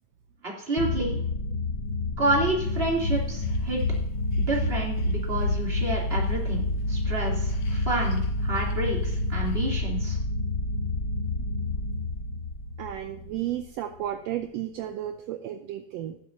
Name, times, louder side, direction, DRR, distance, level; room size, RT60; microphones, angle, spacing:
voice 1, 0.4-1.2 2.2-3.8 4.4-6.6 6.9-10.2, right 2 dB, 20° right, -2 dB, 3.0 m, -29 dB
sound 1, 0.8-13.6, left 2 dB, 90° left, 1.0 m, -29 dB
sound 2, 2.6-4.0 4.3-6.3 7.5-8.3 8.5-8.7 9.0-9.2 9.5-9.6, left 2 dB, 60° left, 2.2 m, -32 dB
voice 2, 12.8-16.2, right 12 dB, 75° right, 7 dB, 1.7 m, -33 dB
18.0 x 7.4 x 2.7 m, 0.73 s
omnidirectional pair, 3.3 m